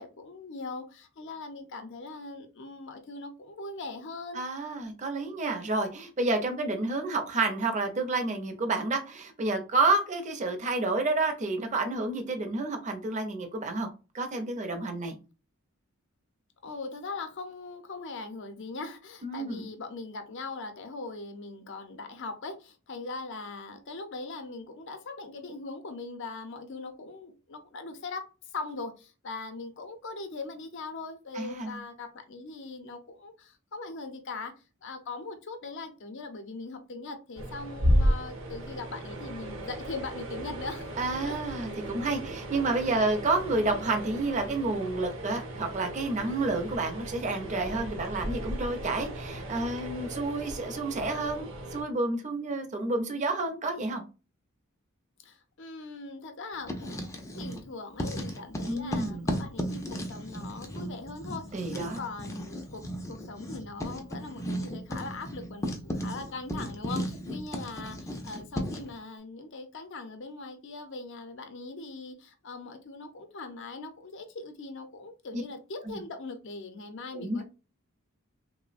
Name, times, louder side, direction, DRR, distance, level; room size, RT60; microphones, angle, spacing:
voice 1, 0.0-4.4 16.6-28.2 28.5-34.5 34.8-41.4 55.2-77.4, left 3 dB, 60° left, 7 dB, 0.5 m, -40 dB
voice 2, 4.3-13.9 14.1-15.1 19.2-19.6 31.3-31.8 41.0-54.0 58.7-59.3 61.5-62.0 75.3-75.4 75.9-76.0 77.1-77.4, right 2 dB, 35° right, 5 dB, 0.5 m, -30 dB
sound 1, 37.4-51.8, equal, 70° right, 0.7 m, -34 dB
Writing, 56.5-57.7 58.0-68.9, equal, 15° left, 0.4 m, -35 dB
3.1 x 2.0 x 2.4 m, 0.32 s
head